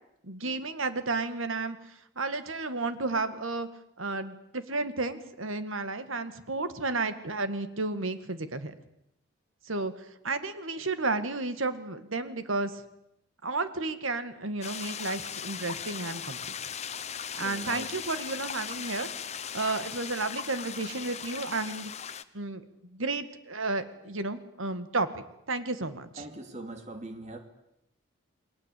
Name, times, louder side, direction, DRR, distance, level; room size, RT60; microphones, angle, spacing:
voice 1, 0.2-3.7 4.0-8.8 9.6-12.8 13.4-16.4 17.3-19.1 19.5-21.9 22.3-26.3, right 3 dB, 85° right, 11 dB, 2.0 m, -32 dB
sound 1, 14.6-22.2, left 8 dB, 35° left, 1.0 m, -38 dB
voice 2, 17.4-17.9 26.2-27.4, right 2 dB, 35° right, 6 dB, 2.9 m, -41 dB
29.0 x 21.5 x 8.5 m, 0.82 s
head